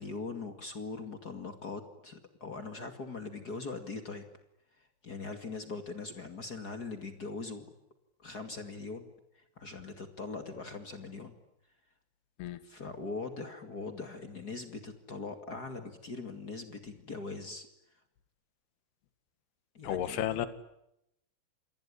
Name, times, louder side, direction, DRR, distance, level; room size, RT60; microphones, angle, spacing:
voice 1, 0.0-4.2 4.8-7.6 8.2-9.1 9.3-11.3 12.6-17.7 19.7-20.2, left 3 dB, 45° left, 7 dB, 1.2 m, -41 dB
voice 2, 19.8-20.5, left 11 dB, 60° left, 12 dB, 3.6 m, -32 dB
28.0 x 21.5 x 10.0 m, 0.82 s
omnidirectional pair, 5.7 m